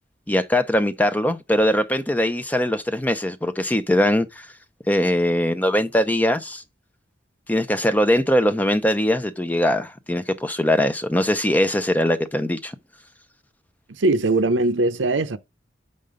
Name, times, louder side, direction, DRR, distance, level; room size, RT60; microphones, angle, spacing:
voice 1, 0.3-4.5 4.9-6.6 7.5-12.7, left 1 dB, 10° left, 0.5 m, -21 dB
voice 2, 13.9-15.4, right 2 dB, 80° right, 0.7 m, -20 dB
6.5 x 5.4 x 4.9 m
head